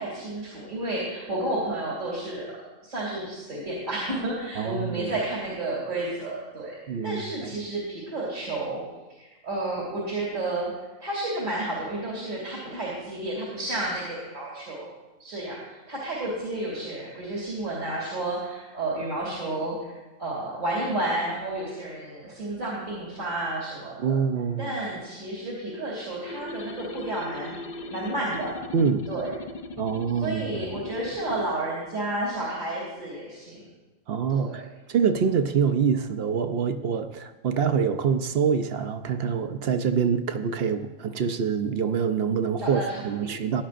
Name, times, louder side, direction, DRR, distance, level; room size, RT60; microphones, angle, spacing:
voice 1, 0.0-2.5 2.8-8.8 9.1-10.7 11.0-14.9 15.2-24.2 24.6-27.5 27.9-28.5 29.1-29.3 30.2-33.7 34.3-34.6 42.6-43.4, right 2 dB, 85° right, -5 dB, 3.0 m, -31 dB
voice 2, 4.6-5.1 6.9-7.5 24.0-24.8 28.7-29.0 29.8-30.6 34.1-34.6 34.9-43.6, right 6 dB, 60° right, 9 dB, 0.7 m, -25 dB
sound 1, 26.3-31.5, left 2 dB, 55° left, 0.5 m, -39 dB
16.0 x 11.0 x 2.5 m, 1.1 s
omnidirectional pair, 1.3 m